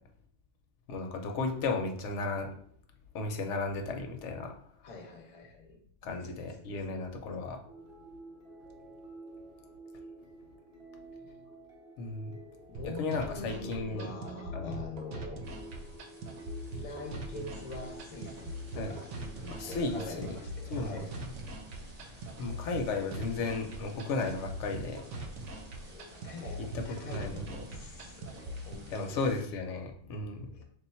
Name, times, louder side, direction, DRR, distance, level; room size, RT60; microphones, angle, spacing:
voice 1, 0.9-2.5 3.1-4.5 6.0-7.6 12.0-12.3 12.8-14.1 14.5-14.7 18.7-19.0 19.5-20.4 20.7-21.0 22.4-25.0 26.7-27.6 28.9-30.5, left 3 dB, 75° left, 4 dB, 0.9 m, -34 dB
voice 2, 4.8-7.0 11.1-11.4 12.7-15.4 16.8-21.2 25.5-29.2 30.5-30.6, left 3 dB, 40° left, 2 dB, 0.5 m, -45 dB
sound 1, 7.6-19.9, right 1 dB, 5° right, 0.8 m, -50 dB
sound 2, 12.7-28.7, right 1 dB, 80° right, 0.9 m, -42 dB
sound 3, 15.4-29.4, equal, 35° right, 0.8 m, -52 dB
3.5 x 2.3 x 4.2 m, 0.64 s
omnidirectional pair, 1.3 m